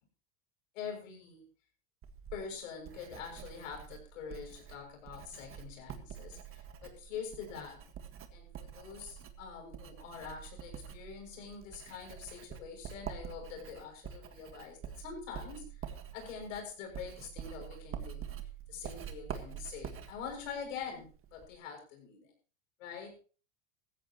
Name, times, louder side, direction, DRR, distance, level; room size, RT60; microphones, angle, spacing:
voice 1, 0.7-1.5 2.3-7.8 8.3-18.3 18.7-22.3 22.8-23.1, left 6 dB, 85° left, 2 dB, 6.9 m, -45 dB
Writing, 2.0-21.5, right 9 dB, 35° right, 1.7 m, -47 dB
16.0 x 15.0 x 3.1 m, 0.37 s
supercardioid pair, 125°, 37 cm